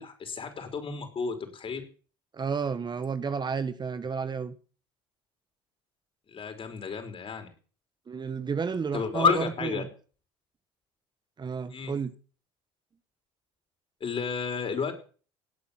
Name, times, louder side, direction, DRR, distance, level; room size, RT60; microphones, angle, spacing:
voice 1, 0.0-1.8 6.3-7.5 8.9-9.8 11.7-11.9 14.0-14.9, left 6 dB, 40° left, 6 dB, 5.3 m, -31 dB
voice 2, 2.3-4.5 8.1-9.9 11.4-12.1, right 5 dB, 35° right, 12 dB, 1.5 m, -31 dB
18.0 x 8.7 x 7.7 m, 0.40 s
hypercardioid pair, 70°, 14 cm